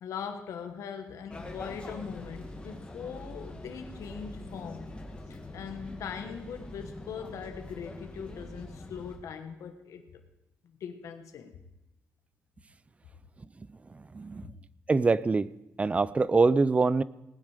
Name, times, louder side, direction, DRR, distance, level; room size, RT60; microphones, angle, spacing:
voice 1, 0.0-4.9 5.3-10.2 10.6-11.6, left 7 dB, 80° left, 6 dB, 1.4 m, -41 dB
sound 1, 1.3-9.2, left 1 dB, 20° left, 2.2 m, -43 dB
voice 2, 13.9-14.5 14.9-15.5 15.8-17.0, right 4 dB, 25° right, 19 dB, 0.4 m, -24 dB
19.0 x 9.8 x 5.0 m, 0.97 s
cardioid pair, 115°, 5 cm